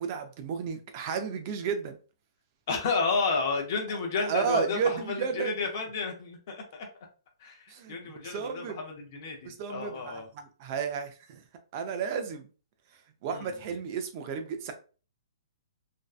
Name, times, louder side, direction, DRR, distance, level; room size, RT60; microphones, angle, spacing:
voice 1, 0.0-2.0 4.2-5.6 7.7-8.8 9.4-11.4 11.7-12.5 13.2-14.7, right 6 dB, 25° right, 0.3 m, -33 dB
voice 2, 2.7-6.9 7.4-7.6 7.9-10.3 13.3-13.5, left 4 dB, 35° left, 0.6 m, -31 dB
2.5 x 2.2 x 2.3 m
hypercardioid pair, 170°, 3 cm